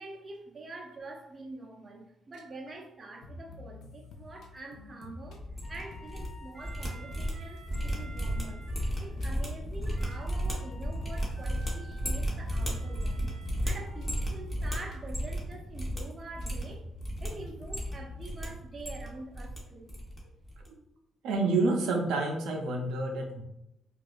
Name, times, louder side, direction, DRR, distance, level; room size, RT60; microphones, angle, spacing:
voice 1, 0.0-8.7 9.0-13.4 13.6-16.8 17.2-19.9, right 2 dB, 35° right, 0.7 m, -45 dB
sound 1, 3.2-11.7 11.9-18.5, left 2 dB, 75° left, 0.6 m, -48 dB
sound 2, 5.4-6.3 6.5-15.5 15.7-16.0 16.3-17.3 17.6-18.5 18.7-19.6 19.9-20.2 20.4-20.7, equal, 10° left, 1.2 m, -33 dB
sound 3, 5.6-14.3, right 1 dB, 5° right, 1.0 m, -51 dB
voice 2, 21.2-23.4, right 3 dB, 85° right, 0.5 m, -28 dB
4.7 x 2.4 x 2.5 m
cardioid pair, 90°, 0 cm